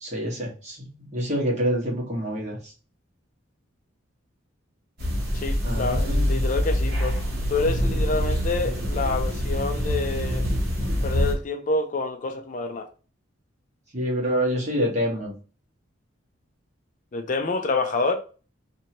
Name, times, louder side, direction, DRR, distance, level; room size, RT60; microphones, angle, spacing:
voice 1, 0.0-2.7 5.6-6.4 13.9-15.3, equal, 35° right, 1.3 m, -27 dB
sound 1, 5.0-11.3, equal, 50° right, 1.2 m, -25 dB
voice 2, 5.3-7.2 7.5-10.5 11.0-12.9 17.1-18.2, left 3 dB, 40° left, 0.4 m, -27 dB
2.8 x 2.6 x 2.9 m
head